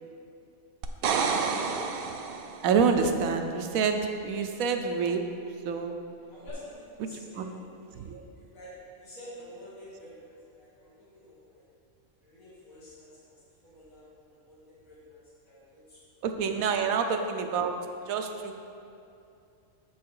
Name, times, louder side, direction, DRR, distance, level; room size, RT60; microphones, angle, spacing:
sound 1, 0.8-2.8 6.5-6.6, right 5 dB, 65° right, 0.5 m, -29 dB
voice 1, 1.4-1.7 6.3-7.6 7.9-11.6 12.2-13.4 13.6-16.0 16.8-16.9, equal, 85° left, -9 dB, 2.3 m, -49 dB
voice 2, 2.6-5.2 5.6-6.0 7.0-7.1 7.4-7.5 8.0-8.2 16.2-17.8 18.1-18.6, right 5 dB, 85° right, 5 dB, 1.1 m, -27 dB
7.2 x 6.1 x 4.7 m, 2.6 s
omnidirectional pair, 1.4 m